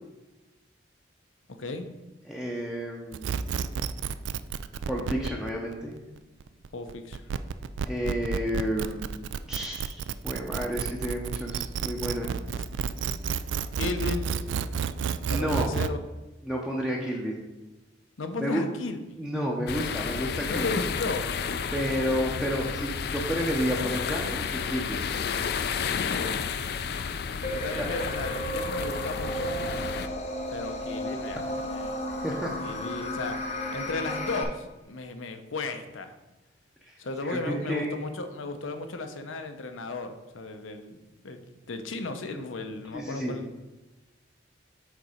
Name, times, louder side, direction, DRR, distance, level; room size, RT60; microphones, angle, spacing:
voice 1, 2.2-3.3 4.9-5.9 7.9-9.0 9.5-12.4 15.3-15.7 16.4-17.4 18.4-18.6 19.2-20.8 21.7-25.0 27.8-27.9 32.2-32.5 36.8-38.0 42.9-43.4, equal, 5° right, -2 dB, 0.6 m, -31 dB
sound 1, 3.1-15.9, right 7 dB, 75° right, 0.3 m, -31 dB
voice 2, 6.7-7.3 13.8-14.4 15.3-16.0 18.2-19.3 20.5-21.3 25.9-26.4 27.5-29.6 30.5-31.4 31.7-32.0 32.6-33.4 33.7-36.1 37.0-41.0 41.2-41.4 41.7-43.5, left 3 dB, 90° left, 7 dB, 0.7 m, -35 dB
sound 2, 19.7-30.1, left 6 dB, 55° left, 0.3 m, -31 dB
sound 3, 27.4-34.4, equal, 35° left, 0.8 m, -33 dB
6.6 x 4.1 x 5.0 m, 1.1 s
head